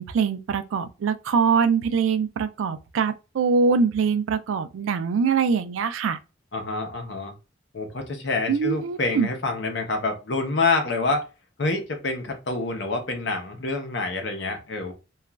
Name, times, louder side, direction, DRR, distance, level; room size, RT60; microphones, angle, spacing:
voice 1, 0.0-6.2 8.5-9.3, right 5 dB, 90° right, 0.3 m, -23 dB
voice 2, 6.5-7.3 7.7-11.3 11.6-14.9, left 3 dB, 65° left, 0.7 m, -27 dB
2.9 x 2.3 x 2.3 m
head